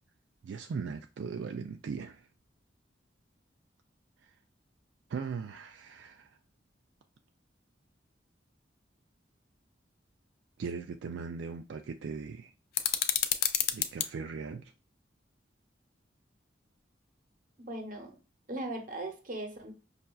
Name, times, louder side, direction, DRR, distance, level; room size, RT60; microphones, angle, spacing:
voice 1, 0.4-2.3 5.1-6.4 10.6-12.5 13.7-14.7, right 5 dB, 80° right, 0.3 m, -39 dB
sound 1, 12.7-14.1, left 10 dB, 55° left, 0.4 m, -29 dB
voice 2, 17.7-18.1 18.5-19.7, right 1 dB, 45° right, 0.8 m, -38 dB
5.5 x 2.4 x 2.3 m
head